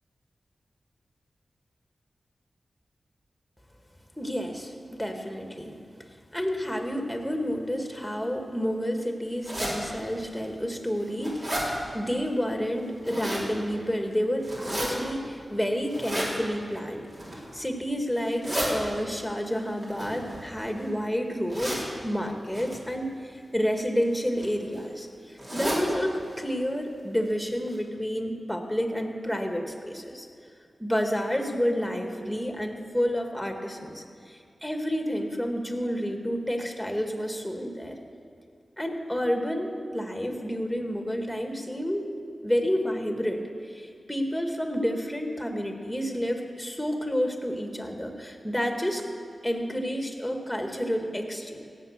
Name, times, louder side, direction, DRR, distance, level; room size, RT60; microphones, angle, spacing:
voice 1, 4.2-5.7 6.3-11.5 11.9-17.1 17.5-30.3 30.8-38.0 38.8-42.1 42.4-49.0 49.4-51.7, equal, 5° left, 4 dB, 1.9 m, -30 dB
sound 1, 9.4-9.7 10.4-10.5 10.9-11.7 12.8-13.5 14.4-14.9 15.9-16.3 17.0-17.5 18.2-18.7 19.8-20.8 21.5-21.8 22.5-22.7 23.8-24.0 24.4-24.5 24.7-24.8 25.4-25.8 26.2-26.3 26.6-26.7 27.3-27.4 27.7-27.8, right 1 dB, 45° right, 4.1 m, -32 dB
17.0 x 7.6 x 6.7 m, 2.3 s
cardioid pair, 40°, 0 cm